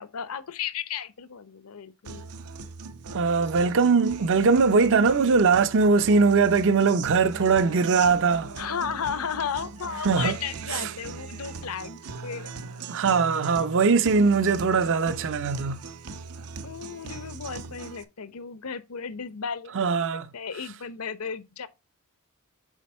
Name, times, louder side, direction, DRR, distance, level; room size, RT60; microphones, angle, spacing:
voice 1, 0.0-2.3 8.6-12.5 16.6-20.0 20.3-21.7, left 7 dB, 75° left, 0.8 m, -34 dB
Guitar, 2.0-18.0, right 4 dB, 85° right, 0.8 m, -40 dB
voice 2, 3.1-8.5 10.0-10.4 10.7-10.9 12.9-15.8 19.7-20.3, right 4 dB, 60° right, 0.5 m, -21 dB
7.3 x 4.3 x 4.3 m
head